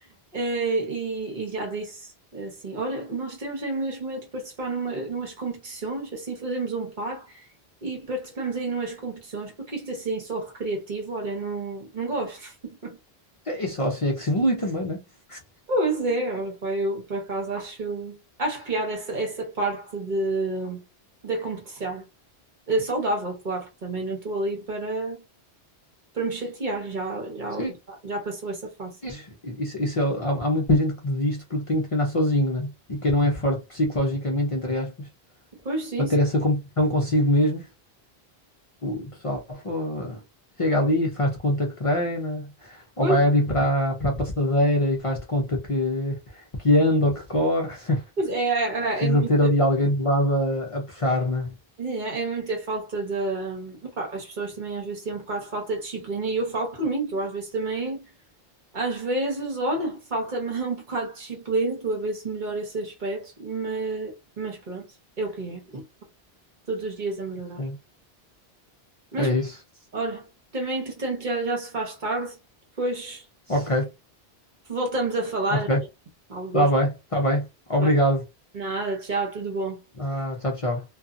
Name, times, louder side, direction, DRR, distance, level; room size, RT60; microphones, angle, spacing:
voice 1, 0.3-7.3 7.8-13.0 15.7-20.8 21.2-22.0 22.7-25.2 26.1-27.7 28.0-28.9 35.6-36.1 43.0-43.2 48.2-49.5 51.8-58.1 58.7-64.8 65.2-65.8 66.7-67.6 69.1-69.3 69.9-70.3 70.5-72.3 72.8-73.2 74.7-75.7 76.3-76.7 77.8-77.9 78.5-79.8, right 2 dB, 50° right, 1.0 m, -29 dB
voice 2, 13.5-15.0 15.3-15.4 27.6-27.7 29.0-35.1 36.0-37.7 38.8-40.2 40.6-48.0 49.0-51.5 67.6-67.8 69.2-69.5 73.5-73.9 75.5-75.8 76.5-78.3 80.0-80.8, left 1 dB, 40° left, 0.6 m, -24 dB
2.6 x 2.4 x 2.5 m
omnidirectional pair, 1.0 m